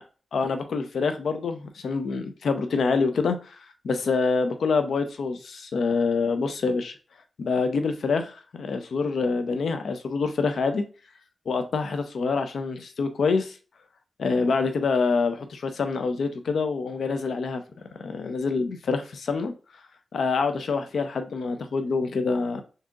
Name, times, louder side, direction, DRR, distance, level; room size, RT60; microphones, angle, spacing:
voice 1, 0.3-7.0 7.4-10.8 11.5-13.6 14.2-17.6 18.0-19.5 20.1-22.6, left 4 dB, 80° left, 0.5 m, -26 dB
3.7 x 2.7 x 3.6 m
cardioid pair, 80°, 0 cm